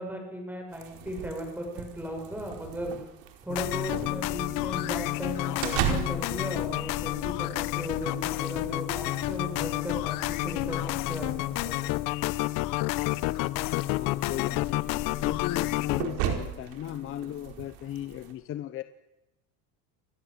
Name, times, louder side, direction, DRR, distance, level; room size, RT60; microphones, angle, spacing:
voice 1, 0.0-3.0 3.4-11.8, equal, 5° right, 3 dB, 7.0 m, -37 dB
sound 1, 0.7-18.3, right 9 dB, 90° right, 5.0 m, -39 dB
sound 2, 3.5-16.0, left 19 dB, 65° left, 1.1 m, -30 dB
sound 3, 13.0-17.7, left 5 dB, 20° left, 6.4 m, -48 dB
voice 2, 13.8-14.9 15.2-18.8, left 12 dB, 35° left, 12 dB, 1.0 m, -36 dB
29.5 x 22.5 x 8.1 m, 0.91 s
cardioid pair, 170°, 35 cm